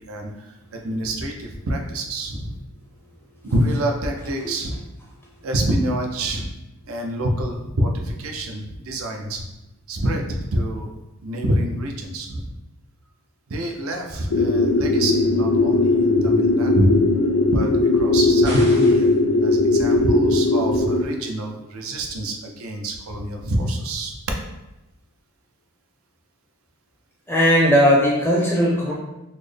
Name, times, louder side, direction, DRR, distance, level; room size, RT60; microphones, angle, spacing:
voice 1, 0.0-2.6 3.4-4.8 5.4-6.5 6.9-9.4 9.9-10.9 11.2-12.6 13.5-17.0 17.5-19.1 19.4-24.1, right 1 dB, 75° right, 2 dB, 0.6 m, -26 dB
sound 1, 14.3-21.0, left 2 dB, 70° left, 0.4 m, -18 dB
sound 2, 18.4-19.2, right 1 dB, 55° right, 1.2 m, -34 dB
voice 2, 27.3-28.9, equal, 10° left, -4 dB, 0.5 m, -18 dB
4.1 x 2.0 x 3.2 m, 0.98 s
head